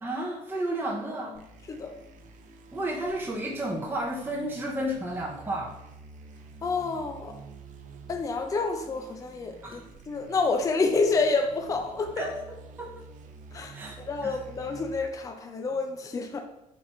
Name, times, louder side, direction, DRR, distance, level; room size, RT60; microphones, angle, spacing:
voice 1, 0.0-1.4 2.7-5.7 9.6-9.8 12.2-12.4 12.8-12.9 13.7-13.9 14.2-14.3, right 1 dB, 15° right, -3 dB, 0.7 m, -32 dB
sound 1, 1.3-15.1, right 5 dB, 65° right, 0.5 m, -48 dB
voice 2, 6.6-7.3 8.1-9.8 10.1-12.3 13.5-16.4, left 4 dB, 25° left, 5 dB, 0.4 m, -28 dB
4.4 x 2.5 x 4.1 m, 0.84 s
cardioid pair, 125°, 14 cm